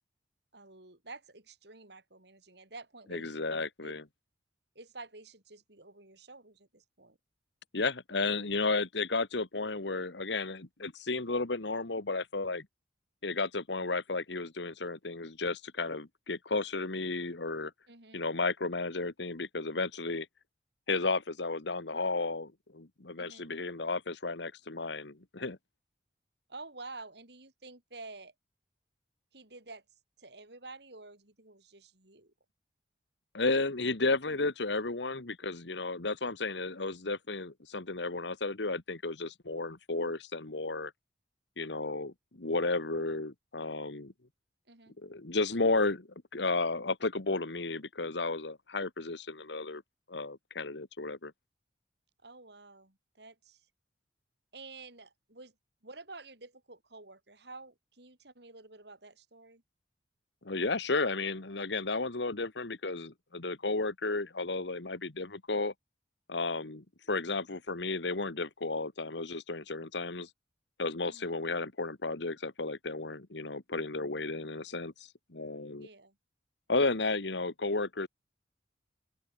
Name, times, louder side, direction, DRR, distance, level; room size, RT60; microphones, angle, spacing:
voice 1, 0.5-3.9 4.8-7.2 17.9-18.2 23.2-23.5 26.5-28.3 29.3-29.8 30.2-32.3 44.7-45.0 52.2-53.7 54.5-55.5 55.8-59.6 71.0-71.3 75.8-76.2, right 3 dB, 65° right, 5.5 m, -50 dB
voice 2, 3.1-4.0 7.7-12.7 13.2-17.7 18.1-20.3 20.9-25.6 33.3-40.9 41.6-44.1 45.0-49.8 50.1-51.3 60.4-65.7 66.3-70.3 70.8-75.9 76.7-78.1, left 3 dB, 70° left, 1.6 m, -33 dB
open air
head